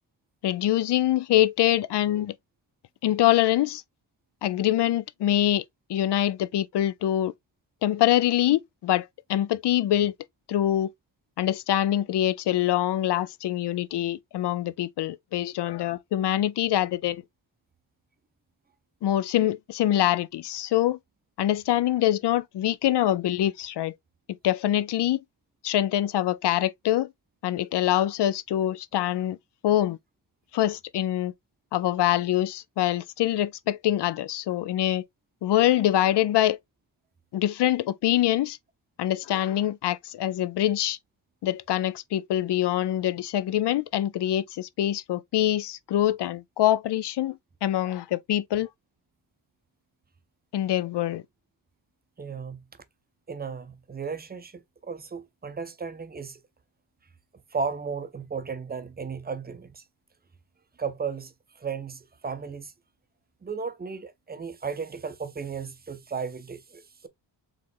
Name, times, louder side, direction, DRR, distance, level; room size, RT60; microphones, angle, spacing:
voice 1, 0.4-2.3 3.0-3.8 4.4-5.6 5.9-7.3 7.8-10.1 10.5-10.9 11.4-17.2 19.0-21.0 21.4-23.9 24.4-25.2 25.6-27.1 27.4-29.4 29.6-30.0 30.5-31.3 31.7-35.0 35.4-36.6 37.3-38.6 39.0-41.0 41.4-48.7 50.5-51.2, left 13 dB, 65° left, 0.5 m, -24 dB
voice 2, 52.2-52.6 53.3-56.4 57.5-59.8 60.8-62.7 63.4-67.1, right 5 dB, 20° right, 0.5 m, -35 dB
4.9 x 3.6 x 2.5 m
wide cardioid pair, 180°, 45 cm